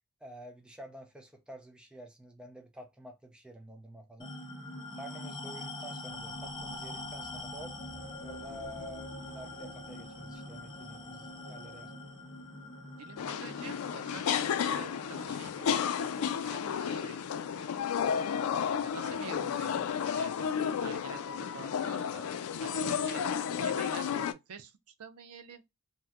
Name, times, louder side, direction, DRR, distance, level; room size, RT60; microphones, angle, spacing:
voice 1, 0.2-4.4 5.0-7.8 8.2-12.0 23.0-23.2, equal, 5° right, 0.5 m, -49 dB
sound 1, 4.2-19.0, left 1 dB, 20° left, 1.1 m, -44 dB
sound 2, 6.1-12.6 12.9-13.0, equal, 60° right, 1.0 m, -57 dB
voice 2, 13.0-17.8 18.8-19.8 20.1-20.5 20.8-22.3 22.6-23.2 23.6-24.7 25.0-25.6, right 6 dB, 85° right, 0.5 m, -48 dB
sound 3, 13.2-24.3, left 7 dB, 80° left, 0.3 m, -32 dB
2.8 x 2.1 x 3.5 m
head